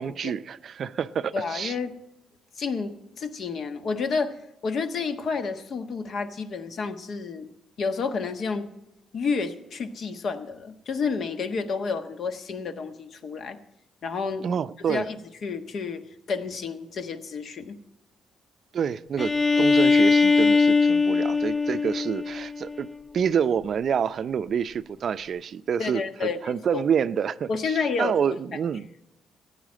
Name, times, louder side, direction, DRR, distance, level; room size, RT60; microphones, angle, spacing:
voice 1, 0.0-1.7 14.4-15.1 18.7-22.9 23.1-28.9, right 7 dB, 55° right, 14 dB, 0.5 m, -28 dB
voice 2, 1.3-1.9 2.6-4.3 4.6-7.5 7.8-8.7 9.1-13.6 14.0-14.5 14.9-15.2 15.4-16.0 16.3-17.8 25.8-26.8 27.5-28.2, left 5 dB, 60° left, 8 dB, 1.3 m, -30 dB
Bowed string instrument, 19.2-22.9, left 4 dB, 30° left, 1.4 m, -21 dB
15.0 x 9.2 x 7.4 m, 0.89 s
cardioid pair, 90°, 0 cm